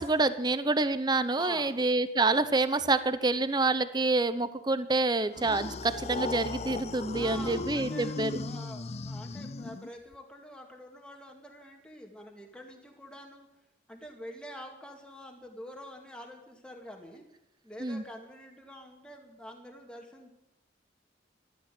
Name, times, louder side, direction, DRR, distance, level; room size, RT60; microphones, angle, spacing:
voice 1, 0.0-8.4 17.8-18.0, right 3 dB, 25° right, 13 dB, 0.8 m, -27 dB
voice 2, 1.4-1.8 7.2-13.5 13.9-17.3 17.6-20.3, left 1 dB, 5° left, 1 dB, 2.3 m, -46 dB
sound 1, 5.3-10.1, left 3 dB, 35° left, 0.4 m, -37 dB
13.0 x 13.0 x 7.8 m, 0.89 s
head